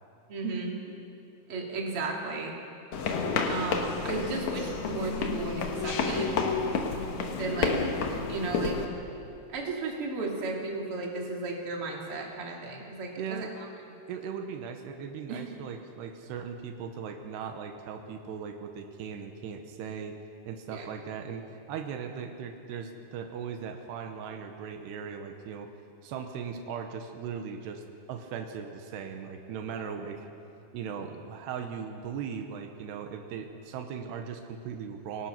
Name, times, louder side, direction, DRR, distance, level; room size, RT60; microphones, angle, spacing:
voice 1, 0.3-0.7 1.5-2.5 3.5-6.3 7.4-7.8 8.3-8.7 9.5-13.5 15.3-15.4 20.7-20.9, right 3 dB, 40° right, -1 dB, 3.0 m, -34 dB
sound 1, 2.9-8.9, left 4 dB, 60° left, 2.2 m, -30 dB
voice 2, 13.2-13.5 14.1-20.2 20.5-25.7 26.0-27.8 28.1-30.3 30.7-35.3, right 7 dB, 85° right, 5 dB, 3.2 m, -38 dB
26.5 x 18.0 x 6.0 m, 2.9 s
omnidirectional pair, 4.7 m